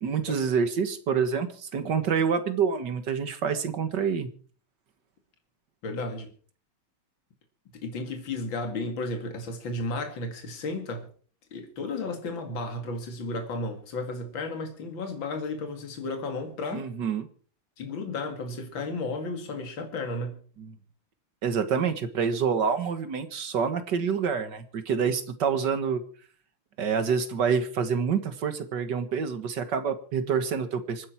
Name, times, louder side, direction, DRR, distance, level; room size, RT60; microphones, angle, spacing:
voice 1, 0.0-4.3 16.7-17.3 20.6-20.7 21.4-26.0 26.8-31.1, right 6 dB, 60° right, 2.1 m, -27 dB
voice 2, 5.8-6.3 7.7-11.1 11.5-16.9 17.8-20.4, left 2 dB, 70° left, 3.0 m, -33 dB
26.0 x 10.0 x 4.5 m
omnidirectional pair, 2.2 m